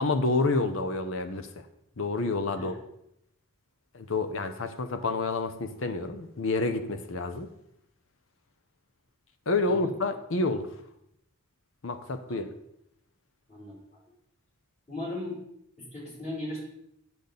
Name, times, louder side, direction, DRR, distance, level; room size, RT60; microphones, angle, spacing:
voice 1, 0.0-1.5 2.0-2.8 3.9-7.5 9.5-10.7 11.8-12.5, left 3 dB, 65° left, 8 dB, 0.8 m, -28 dB
voice 2, 9.6-10.0 12.3-12.5 13.5-13.8 14.9-15.4 15.8-16.6, left 2 dB, 30° left, -6 dB, 3.6 m, -37 dB
8.6 x 7.0 x 4.0 m, 0.77 s
head